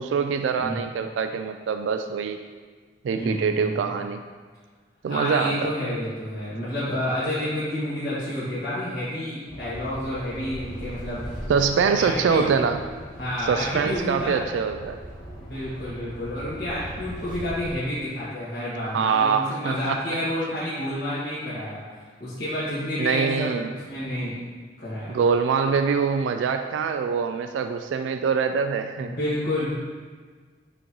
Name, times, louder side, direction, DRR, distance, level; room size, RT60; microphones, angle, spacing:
voice 1, 0.0-2.4 3.0-4.2 5.0-5.7 11.5-12.8 13.4-15.0 18.9-20.0 23.0-23.7 25.1-29.2, right 6 dB, 90° right, 7 dB, 0.3 m, -24 dB
voice 2, 3.1-3.9 5.1-11.5 12.0-12.7 13.2-14.4 15.4-24.4 24.8-25.2 29.0-29.7, left 1 dB, 55° left, -12 dB, 1.7 m, -29 dB
sound 1, 9.5-17.8, equal, 25° left, 1.8 m, -39 dB
9.0 x 3.8 x 3.0 m, 1.5 s
head